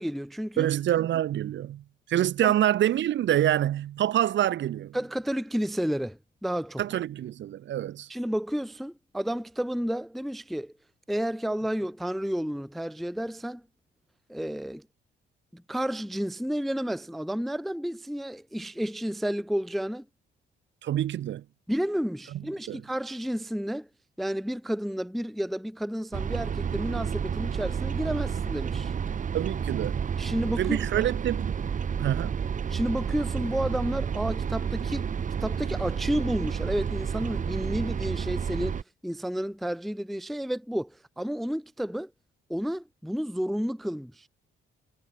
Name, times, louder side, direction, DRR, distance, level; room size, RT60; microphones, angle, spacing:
voice 1, 0.0-0.7 2.4-2.5 4.9-6.8 8.1-10.7 11.1-13.6 14.3-14.8 15.5-20.0 21.7-23.9 24.2-28.9 30.2-30.8 32.7-35.1 35.4-38.8 39.0-40.9 41.2-42.1 42.5-44.3, equal, ahead, 0.4 m, -31 dB
voice 2, 0.6-5.0 6.8-8.1 20.8-21.4 22.3-22.8 29.3-30.1 30.6-31.6 32.0-32.4, right 12 dB, 65° right, 1.1 m, -26 dB
sound 1, 26.1-38.8, right 7 dB, 40° right, 1.1 m, -30 dB
cardioid pair, 90°, 20 cm